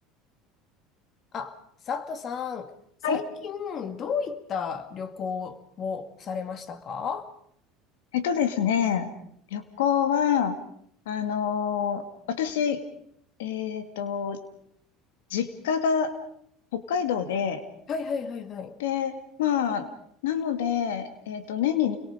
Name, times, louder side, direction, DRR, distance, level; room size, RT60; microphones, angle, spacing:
voice 1, 1.9-2.7 3.1-7.3 17.9-18.8, left 6 dB, 45° left, 2.3 m, -33 dB
voice 2, 8.1-9.1 9.5-10.6 11.1-12.8 13.4-14.4 15.3-16.2 16.7-17.6 18.8-19.9 20.2-22.0, left 8 dB, 90° left, 2.2 m, -26 dB
28.5 x 22.5 x 5.1 m
supercardioid pair, 100°, 0 cm